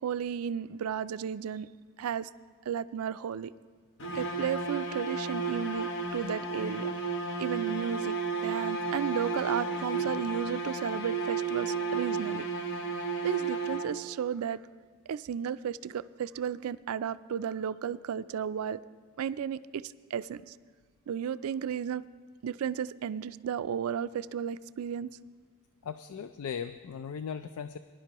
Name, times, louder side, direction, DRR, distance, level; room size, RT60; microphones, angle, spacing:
voice 1, 0.0-1.7 2.0-2.3 2.7-3.5 4.1-6.9 7.4-12.5 13.2-14.6 15.1-18.8 19.2-20.5 21.1-22.1 22.4-25.2, right 8 dB, 80° right, 15 dB, 0.3 m, -34 dB
sound 1, 4.0-14.2, right 4 dB, 55° left, 0.8 m, -33 dB
voice 2, 25.8-27.8, left 7 dB, 80° left, 10 dB, 0.4 m, -38 dB
21.0 x 11.0 x 2.9 m, 1.5 s
head